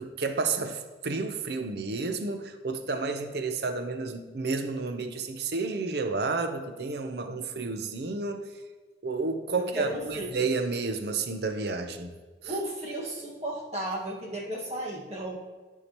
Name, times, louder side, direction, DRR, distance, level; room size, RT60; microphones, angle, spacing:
voice 1, 0.0-8.5 9.0-12.1 12.4-12.5, right 3 dB, 65° right, 7 dB, 0.7 m, -31 dB
voice 2, 9.6-10.3 12.5-15.4, right 1 dB, 35° right, -3 dB, 1.6 m, -34 dB
13.0 x 4.8 x 3.0 m, 1.3 s
head